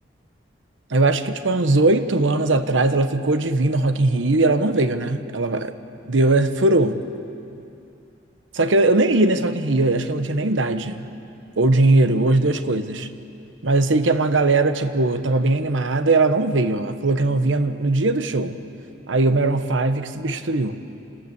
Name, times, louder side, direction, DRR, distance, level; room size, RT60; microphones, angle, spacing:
voice 1, 0.9-5.7 6.1-7.0 8.5-11.1 11.6-13.1 13.6-18.6 19.1-20.8, right 2 dB, 80° right, 10 dB, 1.0 m, -20 dB
27.5 x 13.5 x 8.3 m, 2.7 s
head